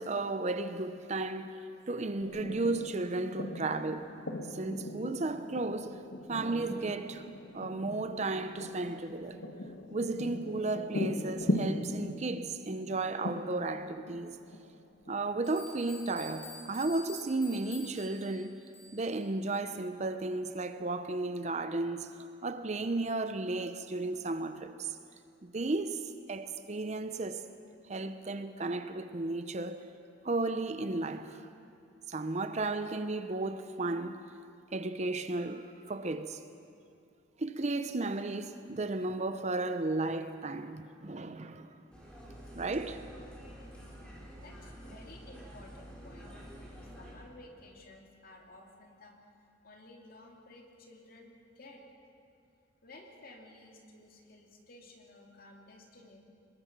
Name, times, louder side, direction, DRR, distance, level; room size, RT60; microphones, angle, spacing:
voice 1, 0.0-1.6 1.9-4.1 4.5-6.0 6.3-7.3 7.5-9.4 9.9-14.4 15.1-18.6 18.9-25.0 25.4-26.0 26.3-27.4 27.9-29.9 30.2-31.4 32.1-34.3 34.7-36.4 37.4-41.8 42.5-43.0, right 2 dB, 35° right, 0.7 m, -34 dB
sound 1, 2.2-15.2, left 1 dB, 65° left, 1.4 m, -39 dB
sound 2, 15.0-15.1 15.4-19.1, left 2 dB, 30° left, 5.9 m, -49 dB
sound 3, 41.9-47.1, equal, 5° left, 4.3 m, -48 dB
voice 2, 44.4-46.3 47.0-49.2 49.6-51.8 52.8-56.2, left 2 dB, 45° left, 2.7 m, -54 dB
23.5 x 20.5 x 6.1 m
head